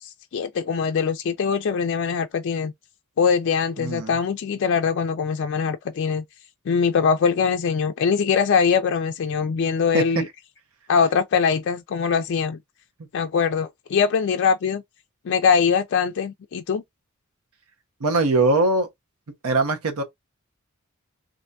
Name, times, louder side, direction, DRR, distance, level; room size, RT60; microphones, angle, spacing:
voice 1, 0.0-2.7 3.2-6.2 6.7-10.3 10.9-12.6 13.1-14.8 15.2-16.8, left 6 dB, 55° left, 0.3 m, -22 dB
voice 2, 3.8-4.1 9.9-10.0 18.0-18.9 19.4-20.0, right 2 dB, 85° right, 0.8 m, -21 dB
3.3 x 2.5 x 2.6 m
head